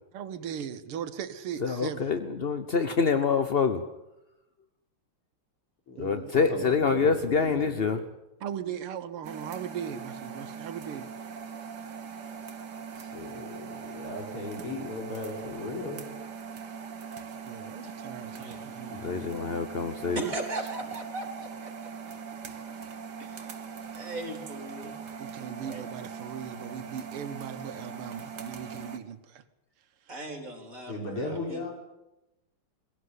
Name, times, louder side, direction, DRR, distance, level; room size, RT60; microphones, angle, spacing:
voice 1, 0.1-2.1 6.0-6.3 8.4-11.1 17.4-19.3 20.1-20.3 25.2-29.4, right 8 dB, 80° right, 10 dB, 2.1 m, -38 dB
voice 2, 1.6-3.8 6.0-8.0 19.0-20.2, left 5 dB, 50° left, 9 dB, 0.7 m, -26 dB
voice 3, 5.9-8.0 13.0-16.1 30.9-31.7, left 2 dB, 85° left, 1 dB, 5.8 m, -37 dB
sound 1, 9.2-29.0, right 6 dB, 55° right, 1.8 m, -41 dB
voice 4, 18.3-19.3 20.2-21.7 23.2-23.5 23.9-24.9 25.6-25.8 30.1-31.6, right 2 dB, 35° right, 4 dB, 4.1 m, -38 dB
22.0 x 17.0 x 9.6 m, 0.95 s
omnidirectional pair, 2.4 m